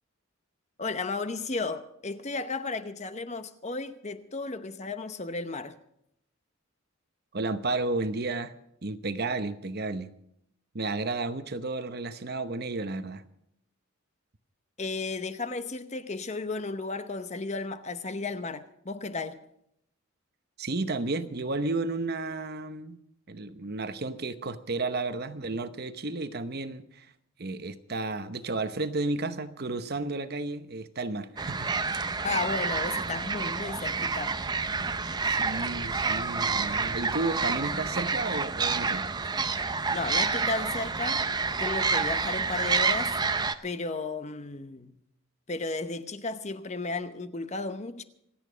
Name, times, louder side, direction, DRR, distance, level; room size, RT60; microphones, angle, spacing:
voice 1, 0.8-5.8 14.8-19.4 32.2-34.4 39.9-41.2 41.6-43.2 43.6-45.0 45.5-48.0, left 3 dB, 30° left, 0.8 m, -34 dB
voice 2, 7.3-8.5 8.8-10.1 10.7-13.2 20.6-23.0 23.3-27.1 27.4-32.0 35.2-39.1, right 3 dB, 50° right, 0.9 m, -32 dB
sound 1, 31.4-43.5, right 4 dB, 20° right, 0.5 m, -28 dB
26.5 x 9.0 x 5.1 m
head